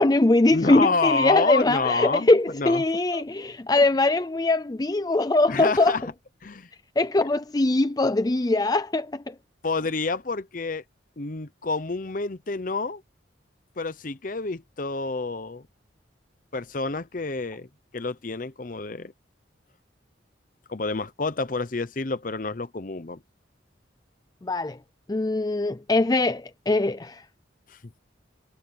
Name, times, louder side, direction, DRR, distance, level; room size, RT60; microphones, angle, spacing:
voice 1, 0.0-5.9 7.0-9.3 24.4-24.8 25.1-27.2, left 2 dB, 20° left, 0.4 m, -22 dB
voice 2, 0.5-2.3 2.5-2.9 3.1-3.2 3.7-3.8 5.5-6.1 6.4-6.7 9.6-10.8 11.2-13.0 13.8-15.7 16.5-17.7 17.9-19.1 20.7-23.2 27.7-27.8, left 3 dB, 45° left, 0.8 m, -28 dB
head